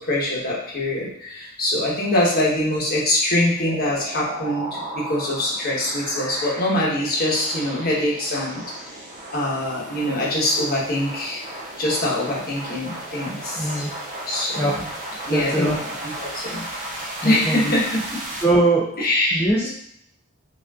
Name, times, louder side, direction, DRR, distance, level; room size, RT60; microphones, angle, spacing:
voice 1, 0.0-8.6 9.3-11.4 11.8-13.9 14.3-14.8 15.2-15.7 16.0-16.7 17.2-18.0 19.0-19.7, left 1 dB, 45° left, -4 dB, 1.1 m, -23 dB
sound 1, 3.7-18.4, right 1 dB, 40° right, 0.7 m, -35 dB
voice 2, 13.6-13.9 14.6-14.9 15.3-15.8 17.2-17.7 18.4-18.9 19.3-19.7, right 2 dB, 10° left, -6 dB, 0.5 m, -21 dB
5.1 x 2.5 x 2.4 m, 0.70 s
head